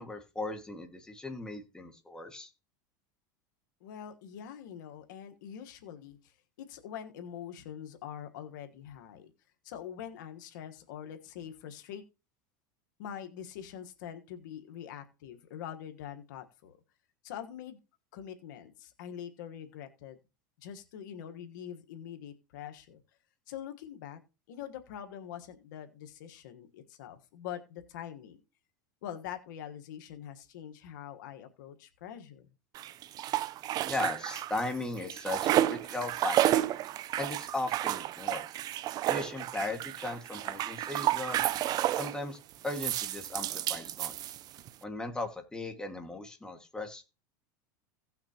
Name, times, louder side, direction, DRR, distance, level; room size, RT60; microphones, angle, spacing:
voice 1, 0.0-2.5 33.9-36.7 37.2-38.5 39.1-41.4 41.9-44.3 44.8-47.0, left 2 dB, 5° left, 3 dB, 1.9 m, -37 dB
voice 2, 3.8-9.3 9.6-12.0 13.0-16.8 17.2-17.8 18.1-20.2 20.6-23.0 23.5-24.2 24.5-28.4 29.0-32.5, left 9 dB, 80° left, 7 dB, 1.3 m, -44 dB
sound 1, 32.8-34.7 35.0-42.2 42.7-44.7, right 13 dB, 40° right, 0.5 m, -31 dB
16.5 x 5.9 x 2.9 m, 0.30 s
supercardioid pair, 120°, 10 cm